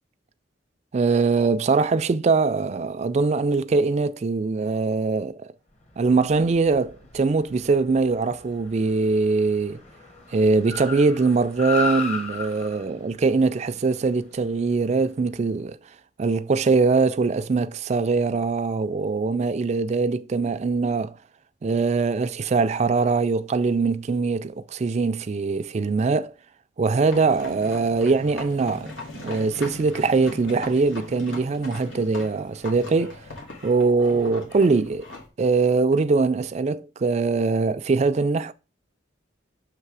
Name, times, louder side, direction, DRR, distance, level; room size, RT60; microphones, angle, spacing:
voice 1, 0.9-5.5 6.0-9.8 10.3-15.8 16.2-21.2 21.6-26.3 26.8-33.2 33.6-35.0 35.4-38.5, right 4 dB, 35° right, 0.3 m, -22 dB
Car, 5.8-15.3, left 3 dB, 35° left, 1.0 m, -36 dB
sound 1, 27.1-35.3, left 2 dB, 80° left, 1.8 m, -39 dB
6.6 x 3.2 x 4.7 m
head